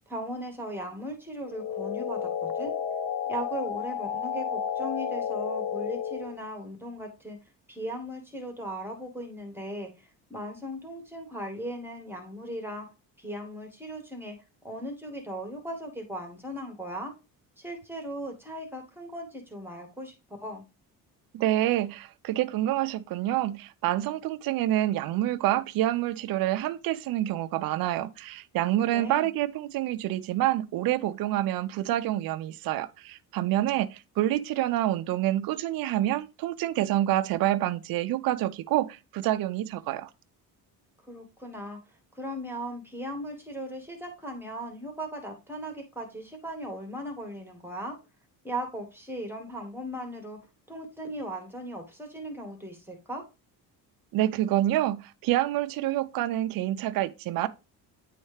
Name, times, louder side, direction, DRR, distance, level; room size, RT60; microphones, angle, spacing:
voice 1, 0.0-2.7 3.3-7.4 7.7-12.9 13.2-14.4 14.6-17.1 17.6-20.1 20.4-20.7 28.8-29.3 41.1-48.0 48.4-50.4 50.7-53.3, right 1 dB, 5° right, 1.3 m, -38 dB
sound 1, 1.5-6.4, left 7 dB, 85° left, 0.9 m, -32 dB
voice 2, 21.3-40.1 54.1-57.5, right 14 dB, 65° right, 0.5 m, -27 dB
9.4 x 3.2 x 3.2 m
cardioid pair, 125°, 38 cm